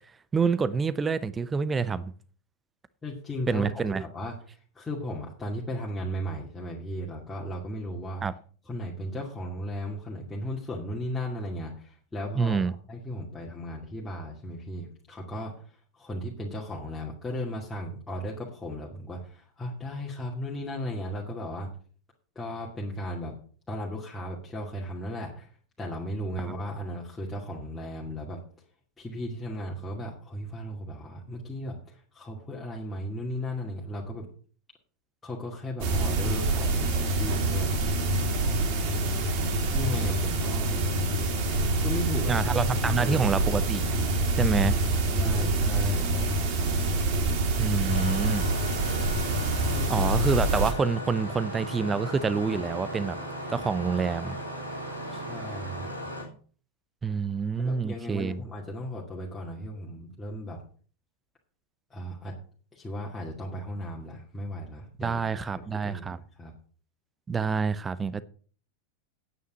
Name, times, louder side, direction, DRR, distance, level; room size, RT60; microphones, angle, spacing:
voice 1, 0.3-2.1 3.5-4.0 8.2-8.3 12.4-12.7 42.3-43.9 44.4-44.8 47.6-48.5 49.9-53.2 53.5-54.4 57.0-58.4 65.0-66.2 67.3-68.2, right 5 dB, 15° right, 0.7 m, -27 dB
voice 2, 3.0-8.2 8.7-12.6 12.9-21.7 22.4-23.3 23.7-25.5 25.8-28.4 29.0-34.3 35.2-37.7 39.7-40.8 41.8-42.4 42.8-43.4 45.2-46.1 49.7-50.2 55.1-56.0 57.6-60.6 61.9-62.3 62.7-65.2 65.5-66.5, equal, 10° left, 2.3 m, -36 dB
sound 1, 35.8-50.7, right 2 dB, 45° right, 2.9 m, -26 dB
Engine starting, 47.9-56.2, equal, 85° right, 4.4 m, -36 dB
9.5 x 9.1 x 5.8 m
figure-of-eight pair, 90°, 0 cm